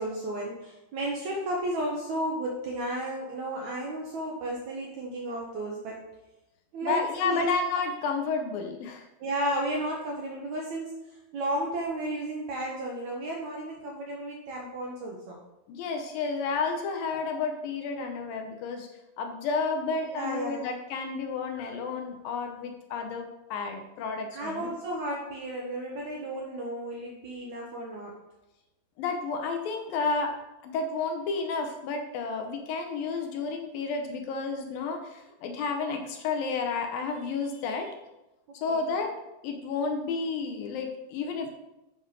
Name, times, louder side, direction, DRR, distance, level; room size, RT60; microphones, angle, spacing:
voice 1, 0.0-6.0 6.7-7.5 9.2-10.9 11.3-15.4 19.8-20.6 24.3-28.2 38.7-38.9, right 1 dB, 70° right, -1 dB, 1.7 m, -33 dB
voice 2, 6.8-9.1 15.7-18.9 19.2-24.7 29.0-30.3 30.6-38.0 38.6-39.1 39.4-41.5, left 4 dB, 75° left, 4 dB, 2.4 m, -31 dB
8.0 x 5.4 x 5.1 m, 0.96 s
omnidirectional pair, 4.5 m